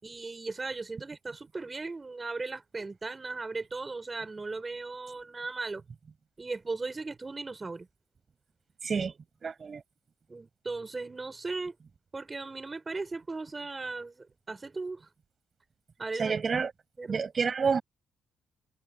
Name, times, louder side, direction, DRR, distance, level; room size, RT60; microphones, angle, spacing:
voice 1, 0.0-5.8 6.4-7.9 10.3-11.8 12.1-15.1 16.0-16.4 17.0-17.2, right 3 dB, 25° right, 6.6 m, -37 dB
voice 2, 8.8-9.8 16.2-16.7 17.1-17.8, right 5 dB, 40° right, 7.0 m, -29 dB
open air
cardioid pair, 90°, 0 cm